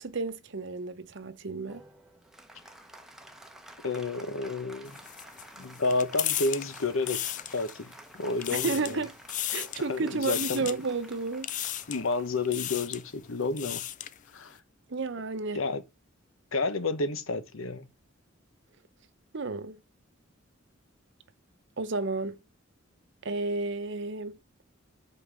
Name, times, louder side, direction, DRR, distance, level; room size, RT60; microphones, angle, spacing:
voice 1, 0.0-1.8 8.6-9.1 9.5-11.5 14.9-15.6 19.3-19.8 21.8-22.4 23.2-24.4, right 3 dB, 65° right, 0.8 m, -32 dB
Applause, 1.7-13.6, right 1 dB, ahead, 0.8 m, -51 dB
voice 2, 3.8-5.0 5.6-7.9 8.2-9.0 9.9-10.7 11.9-13.8 14.3-14.6 15.5-15.8 16.5-17.9, left 3 dB, 85° left, 0.9 m, -30 dB
sound 1, 4.9-7.9 8.3-9.0 9.3-9.9 10.2-10.8 11.4-12.1 12.4-13.0 13.4-14.2, left 12 dB, 40° left, 0.4 m, -34 dB
5.3 x 4.2 x 6.1 m
head